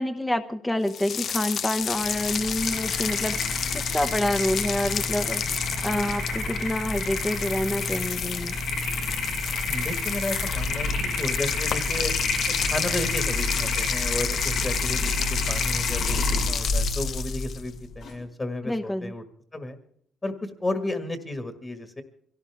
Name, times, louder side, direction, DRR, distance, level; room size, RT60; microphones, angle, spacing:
voice 1, 0.0-5.4 5.8-8.6 18.6-19.1, left 1 dB, 10° left, 8 dB, 0.9 m, -28 dB
sound 1, 0.9-17.7, left 7 dB, 60° left, 0.7 m, -31 dB
sound 2, 1.8-18.2, left 2 dB, 85° left, 5.4 m, -29 dB
voice 2, 9.7-12.1 12.5-19.2 19.5-19.8 20.2-22.0, left 1 dB, 25° left, 7 dB, 1.8 m, -33 dB
24.0 x 17.5 x 3.5 m, 0.65 s
cardioid pair, 90°, 0 cm